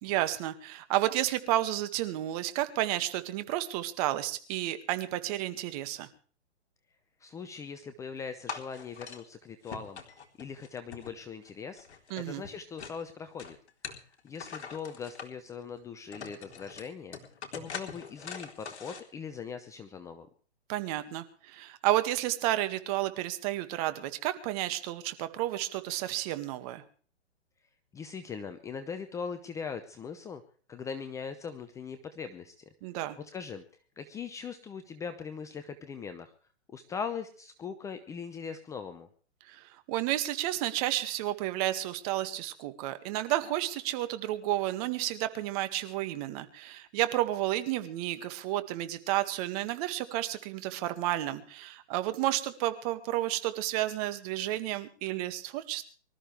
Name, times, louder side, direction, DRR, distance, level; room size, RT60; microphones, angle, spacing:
voice 1, 0.0-6.1 12.1-12.4 20.7-26.8 32.8-33.2 39.5-55.8, right 14 dB, 30° right, 10 dB, 2.0 m, -31 dB
voice 2, 7.2-10.0 10.4-11.9 12.2-13.6 13.9-17.2 17.5-20.3 27.9-30.4 30.7-32.6 33.2-33.6 34.0-36.3 36.7-39.1, left 6 dB, 10° left, 9 dB, 0.7 m, -40 dB
sound 1, 8.5-9.2 9.7-11.5 11.8-13.0 13.4-15.3 15.8-15.9 16.1-19.0, left 6 dB, 70° left, 3.7 m, -43 dB
24.5 x 13.5 x 3.4 m, 0.43 s
hypercardioid pair, 145°, 35 cm